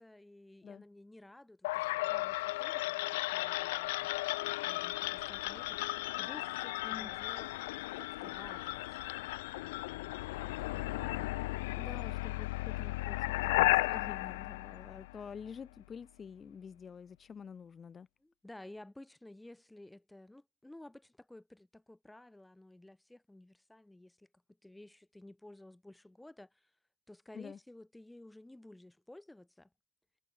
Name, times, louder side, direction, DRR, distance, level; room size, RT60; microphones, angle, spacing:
voice 1, 0.0-4.1 4.6-7.6 8.0-9.0 18.2-24.3 24.6-26.7 27.1-29.7, left 1 dB, 10° left, 5.1 m, -54 dB
sound 1, 1.6-15.5, left 20 dB, 80° left, 0.9 m, -35 dB
voice 2, 11.8-18.1 27.3-27.6, left 6 dB, 40° left, 1.8 m, -48 dB
hypercardioid pair, 60°, 0 cm